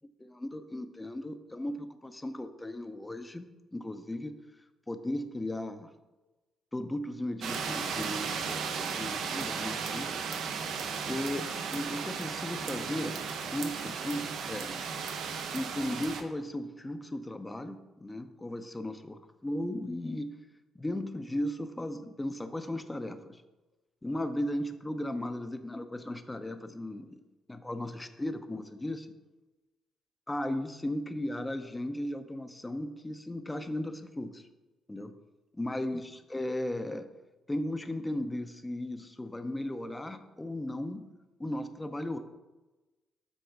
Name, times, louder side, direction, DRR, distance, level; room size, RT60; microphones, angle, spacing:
voice 1, 0.2-4.4 4.9-5.9 6.7-10.1 11.1-13.2 13.5-14.8 15.5-20.3 20.8-23.4 24.0-27.2 27.5-29.1 30.3-34.4 34.9-35.1 35.5-37.1 37.5-41.1 41.4-42.2, left 1 dB, 15° left, 9 dB, 0.6 m, -36 dB
sound 1, 7.4-16.2, right 6 dB, 80° right, 0.7 m, -35 dB
8.1 x 3.6 x 4.6 m, 1.1 s
cardioid pair, 90°, 0 cm